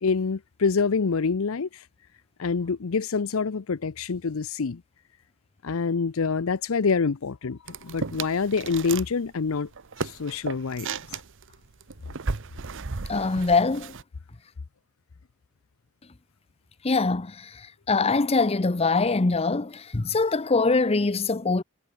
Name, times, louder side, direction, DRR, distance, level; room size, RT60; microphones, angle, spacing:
voice 1, 0.0-1.7 2.4-4.8 5.6-9.7 10.0-10.9, left 5 dB, 65° left, 0.6 m, -26 dB
sound 1, 7.7-9.1 9.4-14.0, right 4 dB, 60° right, 1.0 m, -35 dB
voice 2, 13.1-13.9 16.8-21.6, left 3 dB, 25° left, 0.7 m, -23 dB
head